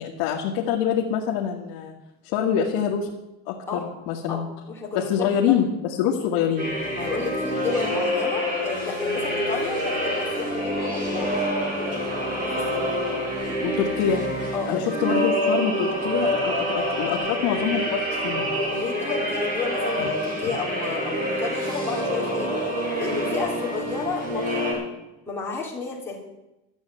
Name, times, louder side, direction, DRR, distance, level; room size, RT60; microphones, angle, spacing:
voice 1, 0.0-1.9 2.2-3.1 3.5-4.5 5.0-6.7 13.6-14.2 14.7-18.4 20.0-20.1, left 8 dB, 75° left, -1 dB, 1.8 m, -25 dB
voice 2, 4.7-5.6 7.0-11.3 12.3-12.8 14.5-14.9 18.6-24.9 25.3-26.2, left 4 dB, 10° left, -5 dB, 3.0 m, -32 dB
sound 1, 6.6-24.7, equal, 25° right, 4.5 m, -27 dB
12.5 x 7.6 x 9.2 m, 0.97 s
cardioid pair, 175°, 29 cm